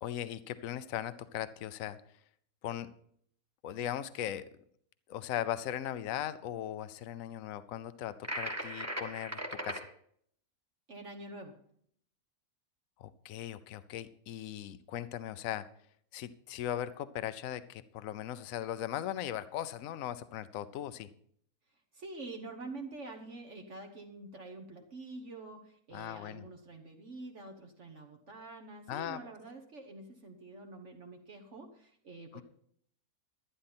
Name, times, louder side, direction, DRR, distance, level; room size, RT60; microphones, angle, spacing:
voice 1, 0.0-2.0 2.6-2.9 3.6-4.5 5.1-9.9 13.0-15.7 16.1-21.1 25.9-26.4 28.9-29.2 32.3-32.4, left 11 dB, 65° left, 14 dB, 1.0 m, -38 dB
sound 1, 8.2-9.8, equal, 10° right, 1.3 m, -38 dB
voice 2, 10.9-11.6 21.9-32.4, right 2 dB, 55° right, 4 dB, 1.4 m, -47 dB
11.5 x 11.0 x 4.3 m, 0.64 s
omnidirectional pair, 1.6 m